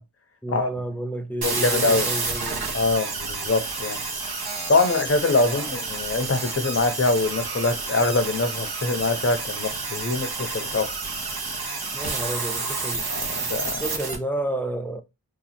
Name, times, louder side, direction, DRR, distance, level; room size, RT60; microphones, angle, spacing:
voice 1, 0.4-2.7 5.5-5.7 11.9-13.1 13.8-15.0, right 1 dB, 5° left, 0.5 m, -31 dB
voice 2, 1.4-2.1 2.7-4.0 4.7-10.9 13.1-13.8, left 3 dB, 35° left, 0.8 m, -24 dB
sound 1, 1.4-14.1, right 4 dB, 65° right, 1.0 m, -30 dB
2.9 x 2.3 x 4.2 m
cardioid pair, 50°, 42 cm